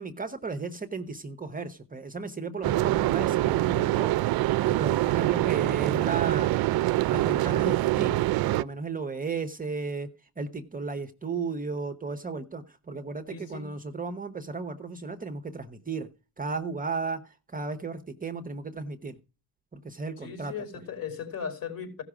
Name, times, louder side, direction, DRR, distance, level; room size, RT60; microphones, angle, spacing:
voice 1, 0.0-4.2 4.6-6.5 7.1-8.3 8.5-10.1 10.4-16.1 16.4-19.2 19.7-20.5, right 4 dB, 20° right, 0.9 m, -34 dB
sound 1, 2.6-8.6, right 17 dB, 50° right, 0.5 m, -25 dB
voice 2, 13.3-13.7 20.2-22.0, left 6 dB, 50° left, 4.7 m, -37 dB
15.5 x 5.9 x 4.9 m
cardioid pair, 115°, 46 cm